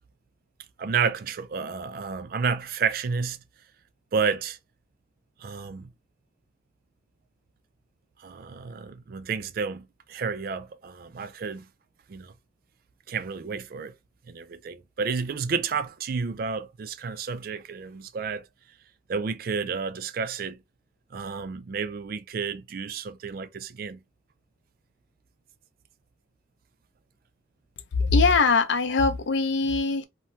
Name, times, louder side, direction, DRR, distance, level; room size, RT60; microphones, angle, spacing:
voice 1, 0.8-3.4 4.1-4.6 5.4-5.9 8.2-11.7 12.1-12.3 13.1-14.0 14.3-18.5 19.1-20.6 21.1-24.0, right 5 dB, 50° right, 0.3 m, -31 dB
voice 2, 28.0-30.0, left 4 dB, 70° left, 0.5 m, -22 dB
2.8 x 2.1 x 3.1 m
head